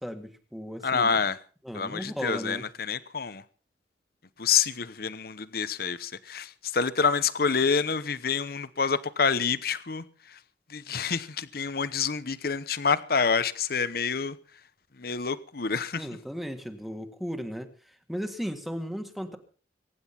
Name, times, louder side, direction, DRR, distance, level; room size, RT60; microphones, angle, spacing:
voice 1, 0.0-1.2 1.6-2.6 16.0-19.4, equal, ahead, 1.6 m, -36 dB
voice 2, 0.8-1.4 1.7-3.4 4.4-10.0 10.7-14.4 15.0-16.0, left 5 dB, 55° left, 0.9 m, -27 dB
23.0 x 10.5 x 5.8 m
head